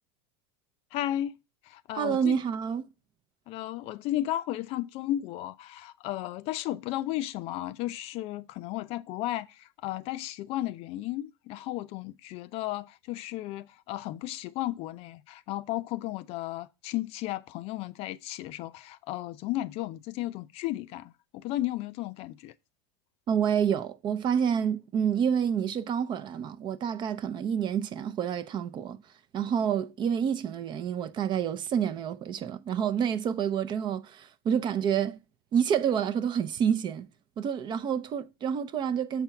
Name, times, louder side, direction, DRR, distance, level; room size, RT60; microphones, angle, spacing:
voice 1, 0.9-1.3 1.6-2.4 3.5-22.5, left 14 dB, 50° left, 0.5 m, -34 dB
voice 2, 1.9-2.9 23.3-29.0 29.3-35.2 35.5-37.1 37.4-39.2, right 8 dB, 35° right, 0.7 m, -28 dB
7.1 x 4.4 x 5.7 m
hypercardioid pair, 110°, 13 cm